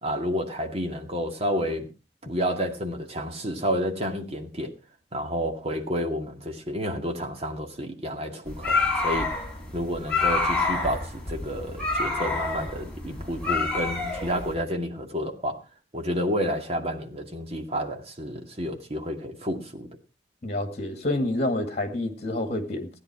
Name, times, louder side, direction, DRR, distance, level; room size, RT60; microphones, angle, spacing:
voice 1, 0.0-1.9 2.2-4.7 5.1-9.3 9.7-15.6 15.9-19.9, equal, 35° right, 2.2 m, -30 dB
sound 1, 8.5-14.5, left 3 dB, 5° left, 4.1 m, -28 dB
voice 2, 20.4-22.9, left 1 dB, 40° left, 2.1 m, -28 dB
16.5 x 9.9 x 4.8 m
head